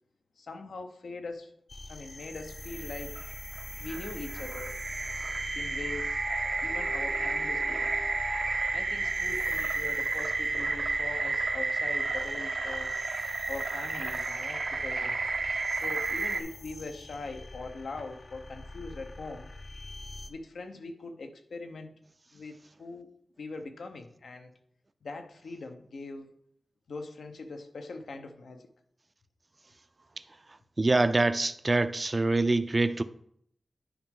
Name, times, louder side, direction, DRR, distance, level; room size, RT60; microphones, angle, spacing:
voice 1, 0.4-1.5 1.9-3.2 3.8-4.8 5.5-6.2 6.6-7.9 8.7-12.9 13.5-15.2 15.8-19.5 20.3-21.9 22.3-23.1 23.4-24.5 25.0-26.4 26.9-28.7, left 3 dB, 90° left, 0.8 m, -42 dB
sound 1, 1.7-20.3, left 2 dB, 45° left, 0.7 m, -43 dB
sound 2, 2.4-16.4, right 3 dB, 80° right, 0.8 m, -32 dB
voice 2, 30.8-33.0, right 2 dB, 35° right, 0.4 m, -25 dB
10.0 x 5.0 x 3.7 m
wide cardioid pair, 70°, 0 cm